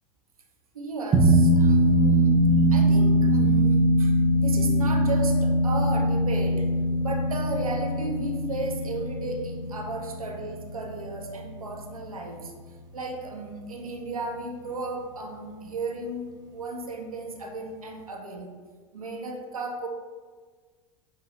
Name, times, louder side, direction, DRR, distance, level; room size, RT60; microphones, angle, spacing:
voice 1, 0.7-6.7 7.0-12.5 12.9-18.5 18.9-19.9, right 2 dB, 80° right, 2 dB, 0.6 m, -34 dB
sound 1, 1.1-11.8, equal, 20° right, 0.5 m, -22 dB
5.7 x 2.6 x 2.8 m, 1.5 s
figure-of-eight pair, 80°, 18 cm